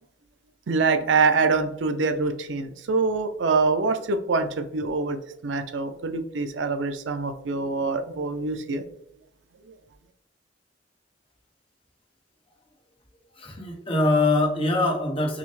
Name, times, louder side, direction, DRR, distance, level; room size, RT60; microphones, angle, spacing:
voice 1, 0.7-8.8, right 4 dB, 75° right, 8 dB, 0.5 m, -25 dB
voice 2, 13.4-15.4, left 2 dB, 30° left, 0 dB, 0.9 m, -23 dB
5.9 x 2.1 x 3.1 m, 0.75 s
head